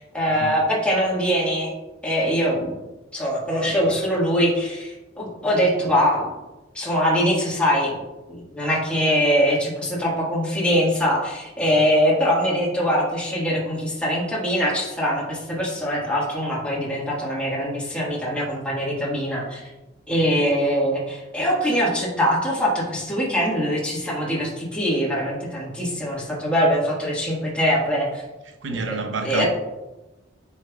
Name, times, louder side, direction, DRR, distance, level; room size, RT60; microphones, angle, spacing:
voice 1, 0.0-1.7 2.0-2.7 3.1-6.3 6.7-8.0 8.3-19.6 20.1-28.2 28.7-29.5, equal, 5° left, -6 dB, 1.6 m, -23 dB
voice 2, 28.6-29.5, right 4 dB, 80° right, 6 dB, 0.8 m, -30 dB
9.1 x 5.5 x 2.3 m, 1.1 s
head